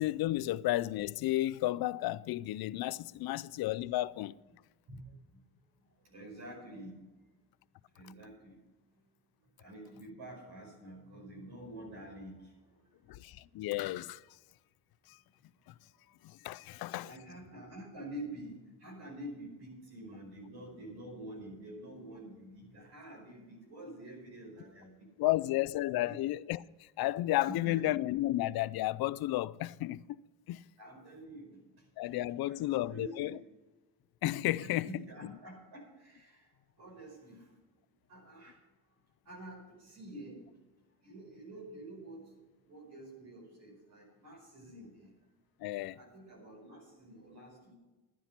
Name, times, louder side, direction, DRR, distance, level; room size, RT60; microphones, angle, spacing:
voice 1, 0.0-4.3 13.1-14.2 15.1-15.2 15.7-15.8 16.2-17.1 25.2-30.2 30.5-30.6 32.0-33.4 34.2-34.9 35.2-35.3 45.6-46.0, left 16 dB, 60° left, 0.6 m, -33 dB
voice 2, 6.0-6.9 7.9-8.6 9.6-13.0 15.8-15.9 17.0-25.4 26.1-26.2 27.5-27.8 30.8-32.1 32.5-33.4 34.6-36.5 36.8-37.5 38.1-38.6 39.3-40.7 41.0-45.1 45.8-47.7, right 1 dB, 70° right, 5.3 m, -48 dB
11.5 x 10.0 x 5.8 m
cardioid pair, 85°, 41 cm